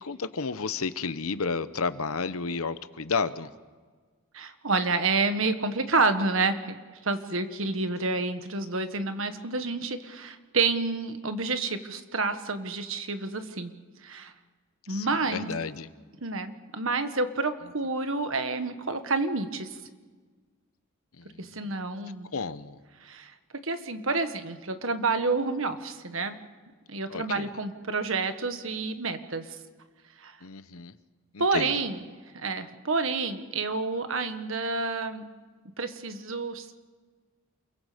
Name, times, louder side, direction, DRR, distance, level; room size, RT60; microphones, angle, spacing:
voice 1, 0.0-3.5 7.7-7.9 14.9-15.9 21.2-21.7 22.3-22.8 27.1-27.5 30.4-30.9 31.3-31.7, left 4 dB, 80° left, 13 dB, 0.9 m, -32 dB
voice 2, 4.3-6.8 7.0-13.7 14.0-14.3 14.9-15.5 16.2-19.7 21.4-22.3 23.0-23.3 23.6-26.4 26.9-29.5 30.2-30.3 31.4-32.0 32.3-35.3 35.8-36.7, right 3 dB, 65° right, 8 dB, 1.6 m, -29 dB
28.5 x 22.5 x 5.2 m, 1.4 s
head